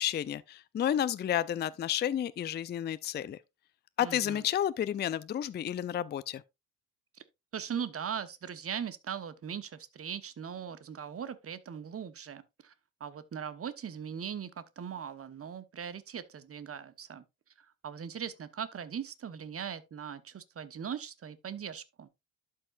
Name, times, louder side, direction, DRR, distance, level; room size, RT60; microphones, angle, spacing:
voice 1, 0.0-3.4 4.0-6.4, left 10 dB, 25° left, 0.5 m, -31 dB
voice 2, 4.0-4.5 7.1-7.2 7.5-12.7 13.0-17.2 17.6-22.1, right 7 dB, 30° right, 1.1 m, -40 dB
12.0 x 5.7 x 2.5 m
hypercardioid pair, 55°, 44 cm